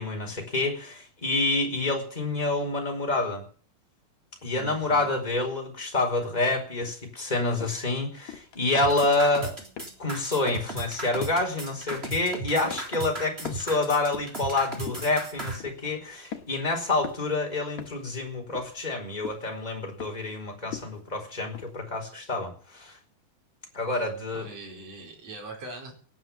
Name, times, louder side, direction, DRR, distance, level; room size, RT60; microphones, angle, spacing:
voice 1, 0.0-3.4 4.4-9.6 10.0-23.0 23.7-24.5, left 2 dB, 15° left, 2 dB, 4.5 m, -28 dB
voice 2, 4.5-5.1 24.3-25.9, right 2 dB, 55° right, 0 dB, 5.7 m, -42 dB
sound 1, 6.8-7.1 7.6-7.9 8.3-8.6 9.0-9.3 9.8-10.2 10.5-10.7 11.2-11.5 11.9-12.4 12.7-13.1 13.4-14.4 14.9-15.2 15.6-15.9 16.3-16.7 17.0-17.3 17.8-18.1 18.5-19.0 19.2-19.5 20.0-20.3 20.7-21.1 21.5-21.7, left 8 dB, 70° left, 3.0 m, -42 dB
sound 2, 8.7-15.6, right 2 dB, 20° right, 3.6 m, -35 dB
18.0 x 9.6 x 7.4 m, 0.44 s
omnidirectional pair, 3.4 m